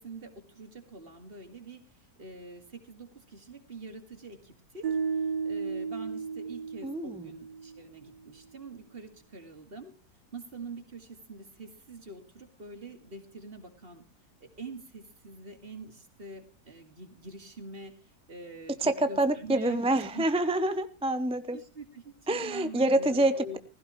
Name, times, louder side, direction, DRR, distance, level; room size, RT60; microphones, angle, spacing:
voice 1, 0.0-1.8 2.2-4.9 5.4-9.9 10.3-14.0 14.4-17.9 18.3-18.8 19.1-19.8 20.1-20.3 21.5-23.6, right 2 dB, 35° right, 7 dB, 2.3 m, -45 dB
sound 1, 4.8-8.0, right 5 dB, 90° right, 2.0 m, -34 dB
voice 2, 6.8-7.3 18.8-21.6 22.3-23.6, right 1 dB, 5° right, 11 dB, 0.4 m, -27 dB
16.0 x 16.0 x 3.1 m, 0.36 s
omnidirectional pair, 1.7 m